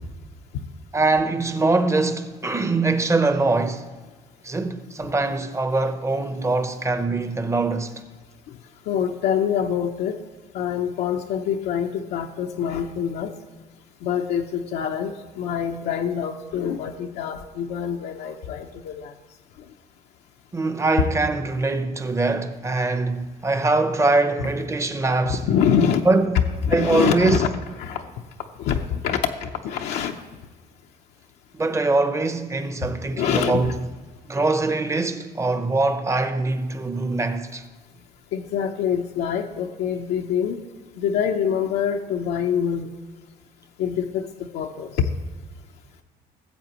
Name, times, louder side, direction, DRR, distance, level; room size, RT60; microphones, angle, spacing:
voice 1, 0.9-3.9 4.4-8.0 20.5-25.4 26.1-26.4 26.7-27.4 31.5-33.8 34.3-37.7, right 3 dB, 15° right, 0.8 m, -23 dB
voice 2, 8.9-10.2 10.5-13.3 14.0-19.1 25.2-26.0 26.6-27.5 27.8-28.0 28.6-30.1 33.2-33.6 38.3-40.6 41.0-42.9 43.8-45.1, left 8 dB, 80° left, 0.7 m, -25 dB
17.0 x 7.7 x 3.0 m
cardioid pair, 110°, 17 cm